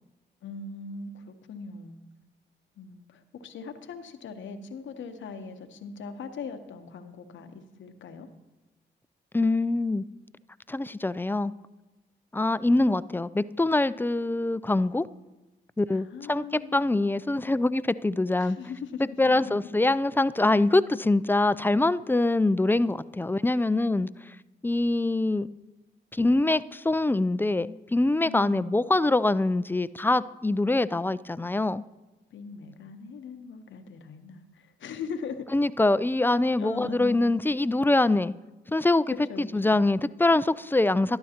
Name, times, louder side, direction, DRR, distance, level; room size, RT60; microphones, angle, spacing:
voice 1, 0.4-2.0 2.8-8.3 15.9-16.9 18.4-19.8 28.2-28.7 32.3-35.5 36.6-37.2 39.1-39.8, left 5 dB, 80° left, 8 dB, 0.9 m, -40 dB
voice 2, 9.3-10.0 10.7-11.5 12.3-15.1 15.8-16.4 16.7-18.6 19.2-24.1 24.6-25.5 26.1-31.8 35.5-38.3 38.7-41.2, left 2 dB, 10° left, 16 dB, 0.3 m, -24 dB
12.5 x 11.5 x 2.9 m, 1.1 s
supercardioid pair, 50°, 20 cm